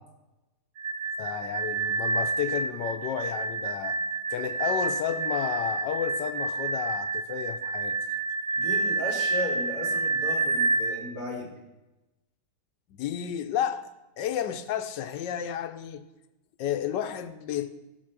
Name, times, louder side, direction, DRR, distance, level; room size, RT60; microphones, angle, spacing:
sound 1, 0.8-11.0, right 3 dB, 75° right, 0.7 m, -29 dB
voice 1, 1.2-4.0 4.3-8.0 12.9-13.9 14.2-16.0 16.6-17.7, left 9 dB, 70° left, 1.3 m, -32 dB
voice 2, 8.5-11.5, left 1 dB, 55° right, 3.4 m, -35 dB
15.0 x 6.5 x 6.0 m
omnidirectional pair, 2.1 m